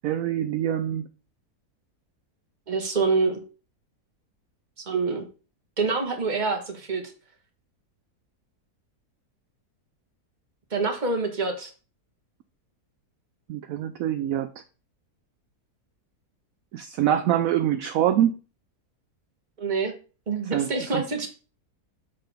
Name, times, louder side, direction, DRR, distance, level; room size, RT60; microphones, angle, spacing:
voice 1, 0.0-1.0 13.5-14.5 16.7-18.3 20.5-21.0, right 11 dB, 70° right, 9 dB, 0.9 m, -25 dB
voice 2, 2.7-3.4 4.9-5.2 5.8-7.0 10.7-11.7 19.6-19.9 20.3-21.3, right 4 dB, 30° right, 3 dB, 1.4 m, -26 dB
6.6 x 5.6 x 3.5 m, 0.36 s
omnidirectional pair, 1.7 m